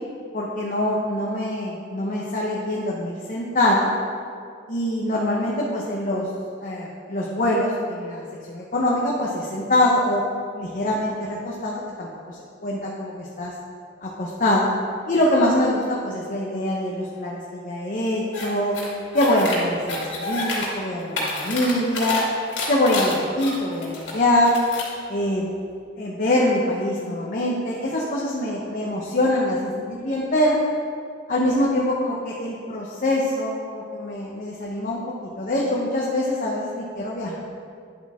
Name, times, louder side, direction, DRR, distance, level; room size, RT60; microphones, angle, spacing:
voice 1, 0.3-3.9 4.7-6.3 6.6-10.2 10.6-13.5 14.0-14.7 15.1-18.8 19.1-22.2 22.7-24.5 25.1-25.5 26.0-30.6 31.3-35.0 35.4-37.3, left 1 dB, 45° left, -4 dB, 1.0 m, -24 dB
sound 1, 18.3-18.5 18.7-19.6 19.9-20.7 21.0-22.2 22.5-24.1 24.4-24.9, left 3 dB, 65° left, 2.4 m, -29 dB
10.5 x 7.9 x 3.7 m, 2.3 s
head